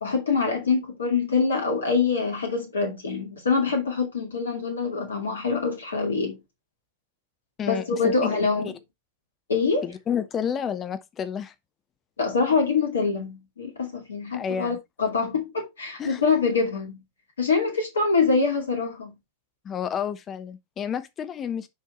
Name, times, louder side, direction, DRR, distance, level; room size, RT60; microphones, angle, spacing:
voice 1, 0.0-6.4 7.7-8.7 9.5-9.9 12.2-17.0 17.4-19.1, left 4 dB, 70° left, 2.4 m, -25 dB
voice 2, 7.6-8.4 8.6-8.7 9.8-11.5 14.3-14.8 16.0-16.2 19.6-21.7, left 8 dB, 25° left, 0.9 m, -30 dB
6.5 x 5.6 x 4.3 m
figure-of-eight pair, 90°, 0 cm